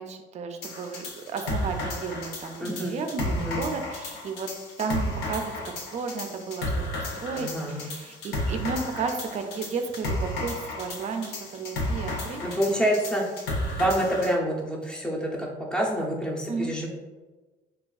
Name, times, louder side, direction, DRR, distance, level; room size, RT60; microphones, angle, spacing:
voice 1, 0.0-4.5 4.8-12.6 16.5-16.8, right 5 dB, 40° right, 5 dB, 0.4 m, -33 dB
sound 1, 0.6-14.3, left 1 dB, 85° left, 0.6 m, -33 dB
voice 2, 2.6-2.9 3.3-3.6 7.3-7.9 12.4-13.2 13.7-16.9, equal, 5° left, -2 dB, 0.6 m, -27 dB
3.3 x 2.3 x 2.3 m, 1.2 s
cardioid pair, 110°, 17 cm